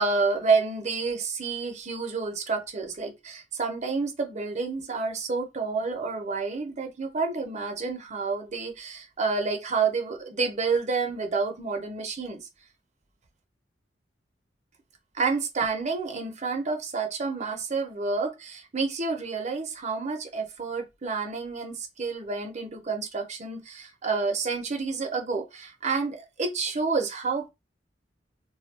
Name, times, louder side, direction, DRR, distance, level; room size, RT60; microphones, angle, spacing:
voice 1, 0.0-12.4 15.1-27.5, right 4 dB, 40° right, 0.5 m, -29 dB
2.2 x 2.1 x 3.1 m
head